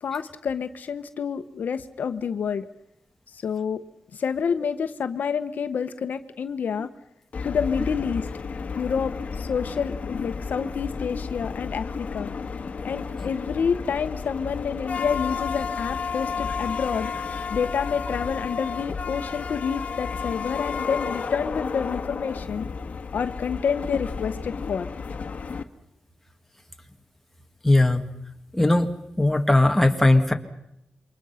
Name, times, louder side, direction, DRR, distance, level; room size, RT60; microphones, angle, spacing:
voice 1, 0.0-2.7 3.3-3.8 4.1-6.9 7.4-8.3 8.8-12.3 12.8-17.1 17.5-22.7 23.1-24.9, left 6 dB, 70° left, 10 dB, 1.1 m, -28 dB
sound 1, 7.3-25.6, left 5 dB, 50° left, 1.6 m, -32 dB
voice 2, 27.6-28.1 28.5-28.9 29.2-30.3, left 2 dB, 5° left, 4 dB, 1.9 m, -18 dB
27.5 x 24.0 x 5.8 m, 0.83 s
wide cardioid pair, 120°, 3 cm